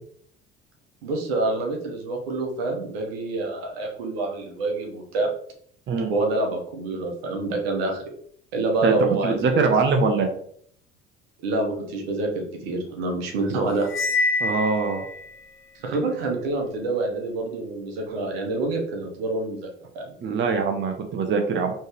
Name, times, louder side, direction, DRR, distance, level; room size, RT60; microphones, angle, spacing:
voice 1, 1.0-5.3 6.1-8.1 8.5-9.8 11.4-13.9 15.7-19.7 19.9-20.1, right 2 dB, 75° right, 2 dB, 1.1 m, -27 dB
voice 2, 9.2-10.3 14.4-15.0 20.2-21.7, right 4 dB, 35° right, 5 dB, 0.8 m, -22 dB
Cymbal, 13.9-15.3, left 3 dB, 40° left, 0.7 m, -25 dB
4.4 x 3.2 x 3.1 m, 0.63 s
figure-of-eight pair, 60°, 32 cm